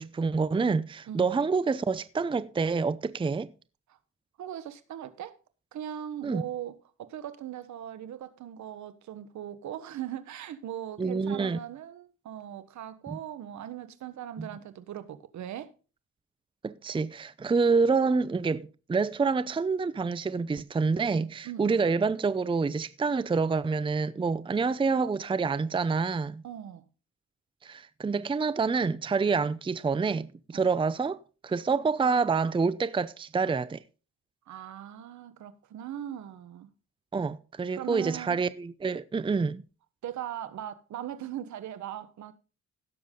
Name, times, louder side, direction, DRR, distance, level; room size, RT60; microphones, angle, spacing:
voice 1, 0.0-3.5 6.2-6.4 11.0-11.6 13.1-13.2 14.4-14.5 16.6-26.4 27.6-31.2 31.4-33.8 37.1-39.6, right 4 dB, 15° right, 0.6 m, -27 dB
voice 2, 1.1-1.4 3.9-4.0 4.4-5.4 5.7-15.7 21.4-21.8 26.4-26.8 30.5-30.7 34.5-36.7 37.7-38.4 40.0-42.3, right 11 dB, 70° right, 1.3 m, -39 dB
16.5 x 7.1 x 3.8 m
cardioid pair, 90°, 30 cm